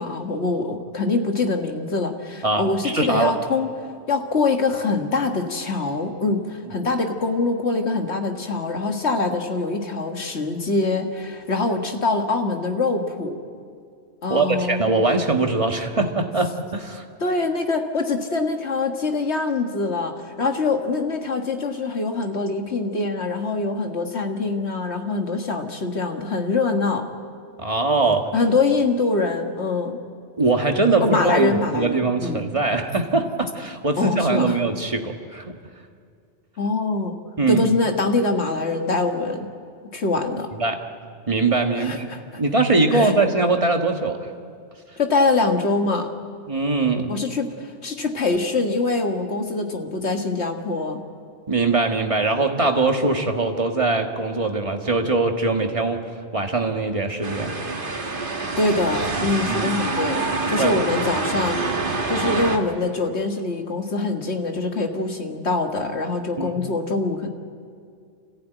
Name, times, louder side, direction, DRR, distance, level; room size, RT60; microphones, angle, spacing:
voice 1, 0.0-3.7 4.1-13.4 14.2-14.8 17.2-27.0 28.3-30.0 31.0-32.4 34.0-34.6 36.6-37.2 37.5-39.5 39.9-40.5 41.8-42.2 42.9-43.1 45.0-46.1 47.1-51.0 58.6-61.6 62.1-67.3, left 3 dB, 70° left, 4 dB, 2.0 m, -24 dB
voice 2, 2.4-3.3 14.3-17.0 27.6-28.3 30.4-35.4 37.4-37.6 40.6-40.8 41.3-42.1 42.3-44.3 46.5-47.1 51.5-56.0 56.3-57.5 57.9-58.1 59.5-59.7 60.6-60.7 66.4-66.6, right 3 dB, 30° right, 3 dB, 1.6 m, -22 dB
sound 1, 57.2-62.6, right 3 dB, 50° right, 1.8 m, -26 dB
28.0 x 14.5 x 9.2 m, 2.2 s
omnidirectional pair, 1.2 m